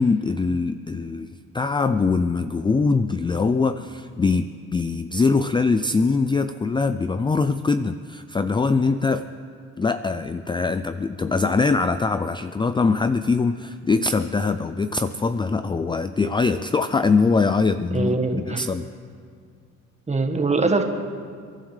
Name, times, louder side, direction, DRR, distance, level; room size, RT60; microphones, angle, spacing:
voice 1, 0.0-9.2 9.8-18.9, left 4 dB, 15° left, 11 dB, 0.4 m, -22 dB
voice 2, 17.9-18.6 20.1-20.8, right 3 dB, 20° right, 5 dB, 1.5 m, -22 dB
29.0 x 11.5 x 3.3 m, 2.2 s
cardioid pair, 90°, 30 cm